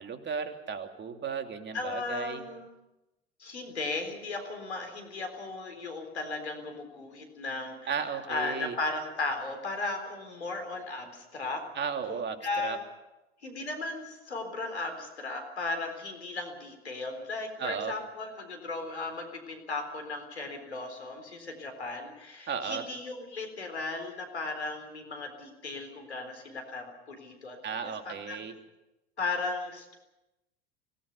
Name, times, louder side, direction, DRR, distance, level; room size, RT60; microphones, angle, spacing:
voice 1, 0.0-2.4 7.9-8.8 11.7-12.8 17.6-17.9 22.5-22.8 27.6-28.5, right 6 dB, 35° right, 6 dB, 2.9 m, -35 dB
voice 2, 1.7-2.7 3.4-7.9 8.3-11.6 12.1-12.8 13.4-27.6 27.8-28.4 29.2-30.0, left 3 dB, 90° left, 5 dB, 4.0 m, -36 dB
25.0 x 18.5 x 7.0 m, 0.97 s
figure-of-eight pair, 70°, 32 cm